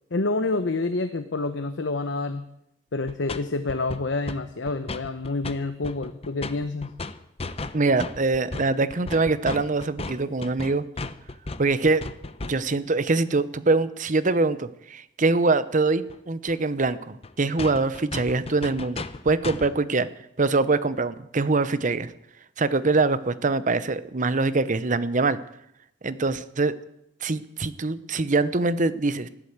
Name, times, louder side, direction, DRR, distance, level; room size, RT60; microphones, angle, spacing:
voice 1, 0.1-2.4 2.9-6.9, left 3 dB, 80° left, 9 dB, 0.9 m, -28 dB
sound 1, 3.1-3.4 3.7-4.4 4.7-5.6 5.8-12.8 16.1-16.2 16.5-16.6 16.9-17.0 17.2-17.3 17.6-19.8, left 3 dB, 35° left, 0.8 m, -35 dB
voice 2, 7.7-10.8 11.6-12.0 12.4-20.1 20.4-22.1 22.6-25.4 26.0-26.7 27.2-29.3, right 3 dB, 45° right, 14 dB, 0.8 m, -24 dB
15.0 x 12.0 x 8.1 m, 0.78 s
head